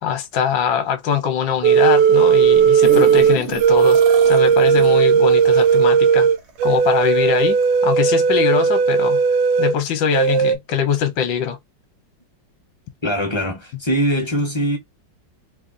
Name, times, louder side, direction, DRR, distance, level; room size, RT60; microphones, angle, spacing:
voice 1, 0.0-6.3 6.6-7.6 7.8-9.2 9.6-11.6, left 7 dB, 70° left, 1.3 m, -22 dB
sound 1, 1.6-9.7 10.1-10.6, right 7 dB, 80° right, 1.3 m, -15 dB
sound 2, 2.4-7.1 7.6-7.7, right 2 dB, 55° right, 0.7 m, -31 dB
voice 2, 13.0-14.8, equal, 35° left, 0.4 m, -22 dB
3.4 x 2.2 x 3.7 m
omnidirectional pair, 2.1 m